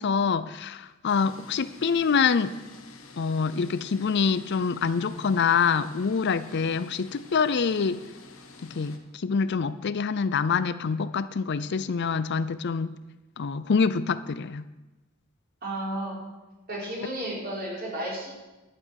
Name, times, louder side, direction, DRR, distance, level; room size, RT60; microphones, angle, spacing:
voice 1, 0.0-2.6 3.2-8.0 8.6-13.0 13.4-14.7, left 5 dB, 55° left, 14 dB, 0.5 m, -26 dB
sound 1, 1.1-9.0, left 3 dB, 80° left, 1.6 m, -49 dB
voice 2, 15.6-16.2 16.7-18.3, right 1 dB, 45° right, -4 dB, 4.8 m, -33 dB
12.0 x 9.5 x 6.4 m, 1.1 s
head